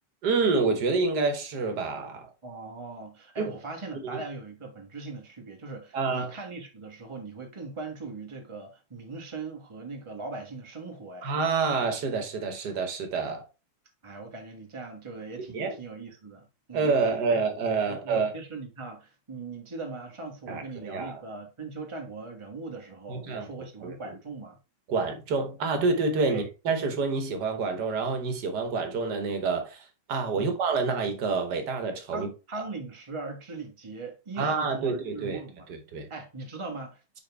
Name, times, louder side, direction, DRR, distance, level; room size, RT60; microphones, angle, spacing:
voice 1, 0.2-2.3 3.4-3.5 4.1-4.2 5.9-6.3 11.2-13.4 15.4-15.8 16.7-18.3 20.5-21.2 23.1-23.5 23.8-24.0 24.9-29.8 30.1-32.3 32.6-32.7 34.4-35.4 35.7-36.1, right 4 dB, 70° right, 1.8 m, -28 dB
voice 2, 2.4-11.3 14.0-17.0 17.3-17.4 17.9-24.6 26.3-26.5 30.3-30.6 32.1-35.7 36.1-37.2, right 3 dB, 20° right, 1.3 m, -40 dB
5.4 x 5.2 x 3.4 m
omnidirectional pair, 1.9 m